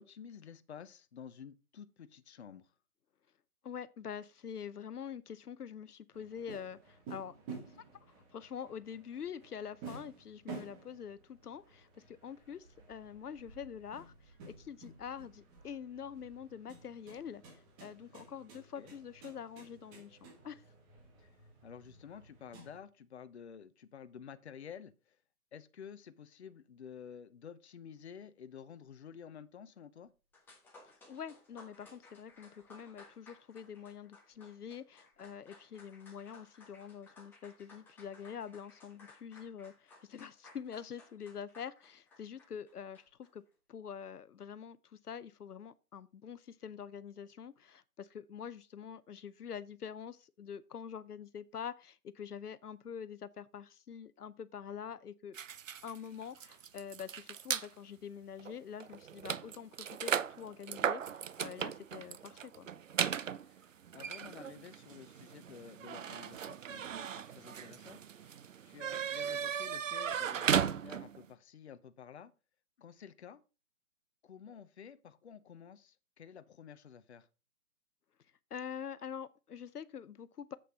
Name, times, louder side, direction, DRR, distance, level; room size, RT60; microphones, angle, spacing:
voice 1, 0.0-2.7 18.8-18.9 21.2-21.3 21.6-25.2 25.5-30.1 63.4-68.0 68.6-72.3 72.8-73.4 74.2-77.3, left 7 dB, 45° left, 0.8 m, -51 dB
voice 2, 3.6-7.9 8.3-20.6 30.8-43.4 43.7-55.4 55.8-62.7 78.5-80.6, left 8 dB, 80° left, 0.8 m, -46 dB
sound 1, 6.1-22.8, right 4 dB, 15° right, 1.4 m, -53 dB
sound 2, 30.3-43.3, left 3 dB, 5° left, 1.5 m, -59 dB
sound 3, 55.3-57.7 58.4-58.5 58.8-71.3, right 8 dB, 55° right, 0.6 m, -37 dB
7.8 x 6.7 x 5.4 m
hypercardioid pair, 155°, 46 cm